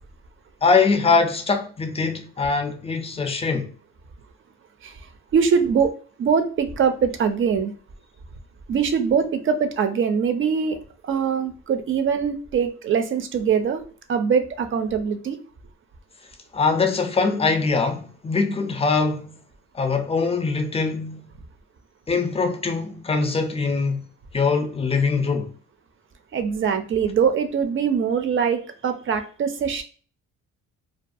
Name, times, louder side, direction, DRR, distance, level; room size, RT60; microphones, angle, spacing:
voice 1, 0.6-3.7 16.5-19.3 19.7-21.2 22.1-24.0 24.3-25.5, left 4 dB, 20° left, 0.5 m, -22 dB
voice 2, 5.3-5.9 6.2-7.7 8.7-13.8 14.1-15.4 26.3-29.8, right 6 dB, 45° right, 0.5 m, -22 dB
2.3 x 2.2 x 2.5 m
cardioid pair, 90°, 30 cm